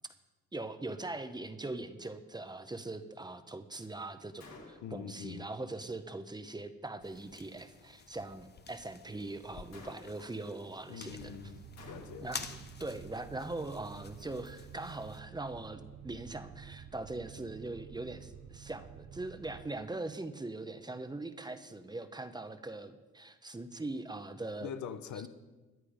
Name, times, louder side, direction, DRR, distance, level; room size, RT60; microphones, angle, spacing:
voice 1, 0.5-11.3 12.2-12.5 12.8-24.7, right 2 dB, 15° right, 0.9 m, -41 dB
Gunshot gunfire, 4.4-5.1 9.7-10.4 11.8-12.5, left 3 dB, 60° left, 2.5 m, -52 dB
voice 2, 4.8-5.5 10.9-12.3 24.6-25.3, left 8 dB, 75° left, 0.8 m, -43 dB
sound 1, 7.0-15.2, left 5 dB, 35° left, 0.9 m, -50 dB
sound 2, 11.1-19.7, right 8 dB, 70° right, 1.0 m, -50 dB
14.0 x 9.9 x 5.1 m
cardioid pair, 90°, 30 cm